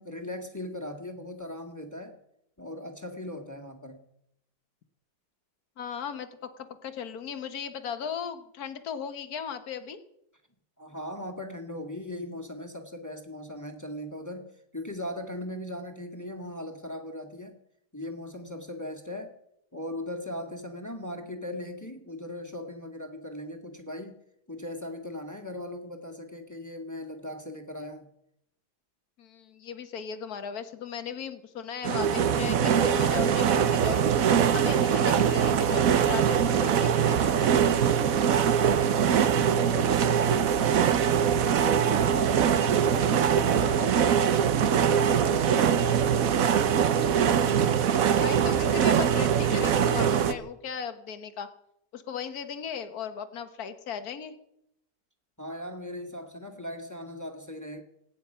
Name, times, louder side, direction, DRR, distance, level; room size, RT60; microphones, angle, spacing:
voice 1, 0.0-2.2 2.6-4.0 10.8-14.5 14.7-17.6 17.9-19.3 19.7-24.2 24.5-28.1 38.8-41.1 41.5-46.8 55.4-57.8, left 1 dB, 10° left, 4 dB, 1.9 m, -38 dB
voice 2, 5.8-10.0 29.2-34.0 34.5-37.5 48.1-51.5 51.9-54.3, left 7 dB, 60° left, 10 dB, 1.7 m, -37 dB
sound 1, 31.8-50.3, right 8 dB, 55° right, 1.2 m, -23 dB
26.0 x 9.7 x 5.7 m, 0.79 s
omnidirectional pair, 1.9 m